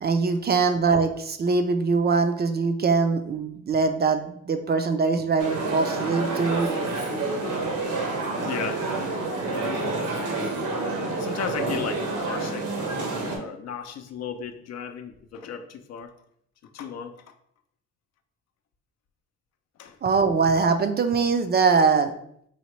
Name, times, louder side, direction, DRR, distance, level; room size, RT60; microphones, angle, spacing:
voice 1, 0.0-6.7 20.0-22.1, right 4 dB, 35° right, 7 dB, 0.4 m, -22 dB
sound 1, 5.4-13.4, right 3 dB, 85° right, 1.0 m, -28 dB
voice 2, 8.4-8.9 9.5-10.0 11.2-12.7 13.3-16.1 16.7-17.1 19.8-19.9, left 7 dB, 60° left, 8 dB, 0.5 m, -35 dB
4.2 x 2.8 x 3.0 m, 0.70 s
cardioid pair, 90°, 30 cm